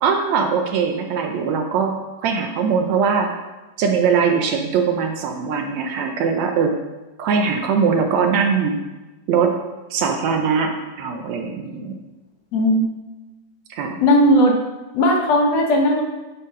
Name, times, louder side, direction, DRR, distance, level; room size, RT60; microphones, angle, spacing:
voice 1, 0.0-1.9 2.2-3.3 3.8-6.8 7.2-8.8 9.3-9.6 9.9-10.7 11.0-12.0 13.7-14.0, right 6 dB, 75° right, 3 dB, 1.8 m, -21 dB
voice 2, 12.5-12.8 14.0-14.6 14.9-16.0, equal, 65° left, 0 dB, 1.9 m, -16 dB
9.9 x 3.4 x 5.5 m, 1.1 s
omnidirectional pair, 3.6 m